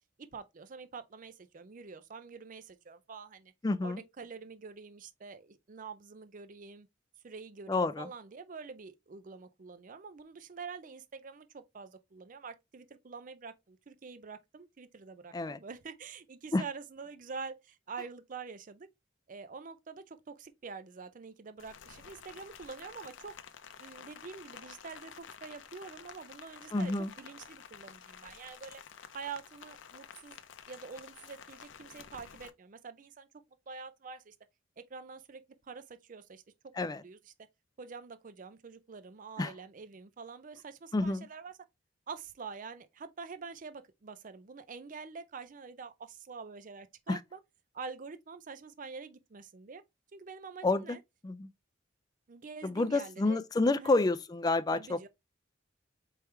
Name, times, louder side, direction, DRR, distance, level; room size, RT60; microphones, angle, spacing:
voice 1, 0.3-3.5 3.8-6.9 7.2-18.9 19.3-23.4 23.8-28.8 29.1-30.4 30.7-33.3 33.7-34.3 34.8-36.4 36.8-37.2 37.8-41.5 42.1-47.4 47.7-49.8 50.1-51.0 52.3-53.4 53.8-54.0 54.7-55.1, right 5 dB, 45° right, 0.5 m, -46 dB
voice 2, 3.6-4.0 7.7-8.1 15.3-15.6 16.5-16.6 26.7-27.1 36.8-37.0 39.4-39.5 40.9-41.3 47.1-47.2 50.6-51.0 51.2-51.5 52.6-55.0, left 2 dB, 20° left, 0.3 m, -29 dB
Rain, 21.6-32.5, left 7 dB, 75° left, 0.6 m, -51 dB
4.6 x 3.4 x 3.1 m
head